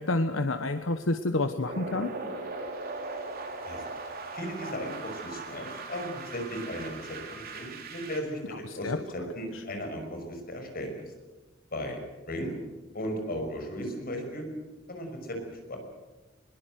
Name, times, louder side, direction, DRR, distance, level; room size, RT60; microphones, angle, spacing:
voice 1, 0.0-2.1 8.6-9.0 9.5-9.6, left 2 dB, 75° left, 8 dB, 1.1 m, -29 dB
sound 1, 1.6-8.2, right 3 dB, 50° right, 3.9 m, -39 dB
voice 2, 4.3-8.4 8.7-11.0 11.7-12.0 12.3-12.5 12.9-14.5 14.9-15.8, equal, 50° left, 4 dB, 5.9 m, -36 dB
22.0 x 21.5 x 7.9 m, 1.2 s
head